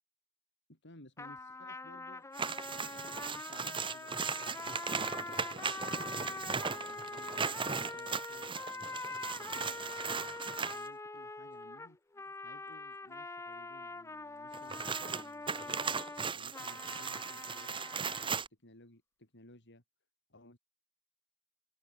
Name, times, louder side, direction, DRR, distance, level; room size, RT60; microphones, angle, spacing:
voice 1, 0.7-2.3 2.8-4.4 4.7-12.1 12.4-19.8 20.3-20.6, left 1 dB, 60° left, 6.7 m, -59 dB
sound 1, 1.2-18.3, left 3 dB, 15° left, 0.6 m, -44 dB
sound 2, 2.3-10.9 14.5-18.5, right 5 dB, 25° right, 0.9 m, -37 dB
open air
head